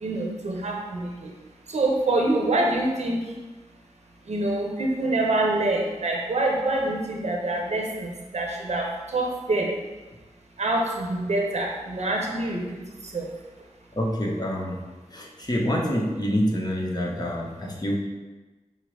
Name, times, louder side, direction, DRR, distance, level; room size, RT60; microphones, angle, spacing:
voice 1, 0.0-1.3 1.7-3.2 4.3-9.7 10.6-12.8 13.1-13.3, right 2 dB, 60° right, 0 dB, 0.8 m, -26 dB
voice 2, 14.0-14.8 15.1-18.0, equal, 30° left, -2 dB, 1.0 m, -26 dB
5.3 x 2.0 x 4.7 m, 1.2 s
cardioid pair, 45°, 13 cm